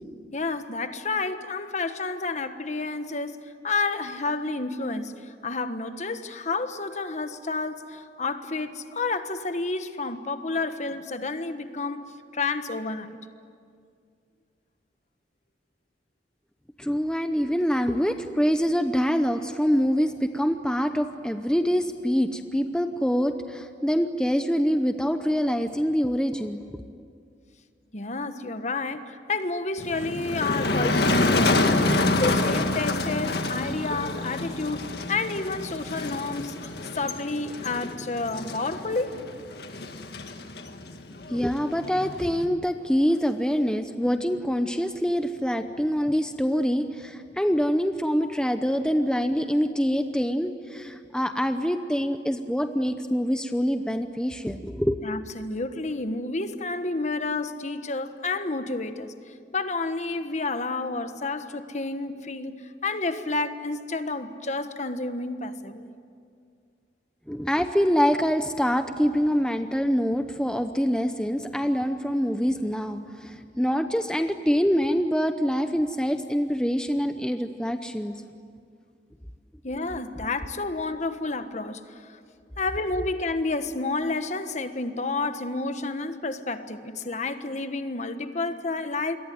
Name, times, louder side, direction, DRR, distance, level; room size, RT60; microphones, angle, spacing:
voice 1, 0.3-13.2 27.9-31.8 32.2-39.1 55.0-59.1 59.5-65.9 79.6-82.1 82.6-89.2, left 3 dB, 40° left, 1.3 m, -30 dB
voice 2, 16.8-26.6 41.3-55.0 67.3-78.1, equal, 5° left, 0.8 m, -25 dB
Motor vehicle (road), 29.8-42.4, left 2 dB, 60° left, 1.9 m, -27 dB
27.5 x 22.5 x 9.4 m
head